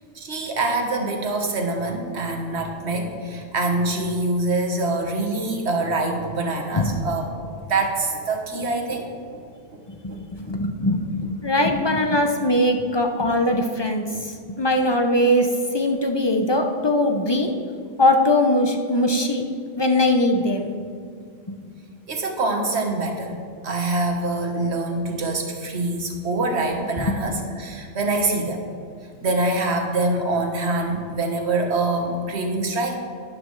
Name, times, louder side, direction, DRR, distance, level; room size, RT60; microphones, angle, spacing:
voice 1, 0.1-9.4 9.7-9.8 10.1-10.2 11.6-11.7 14.1-14.2 22.1-23.4 23.6-28.6 29.2-33.0, right 2 dB, 55° right, 3 dB, 1.5 m, -25 dB
voice 2, 10.0-15.5 15.7-17.5 18.0-19.4 19.8-20.7, left 1 dB, 30° left, 3 dB, 0.6 m, -21 dB
12.0 x 10.5 x 3.2 m, 2.2 s
omnidirectional pair, 1.4 m